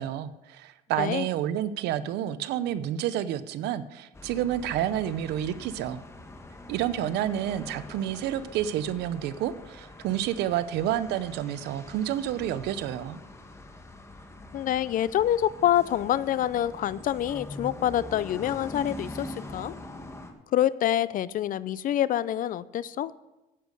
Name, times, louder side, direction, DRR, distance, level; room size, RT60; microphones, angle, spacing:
voice 1, 0.0-6.0 6.7-13.2, right 11 dB, 85° right, 14 dB, 0.7 m, -29 dB
sound 1, 4.1-20.3, left 1 dB, 15° left, 1.4 m, -44 dB
voice 2, 14.5-19.7 20.5-23.1, left 11 dB, 55° left, 18 dB, 0.5 m, -26 dB
10.0 x 8.4 x 6.4 m, 1.0 s
cardioid pair, 110°, 17 cm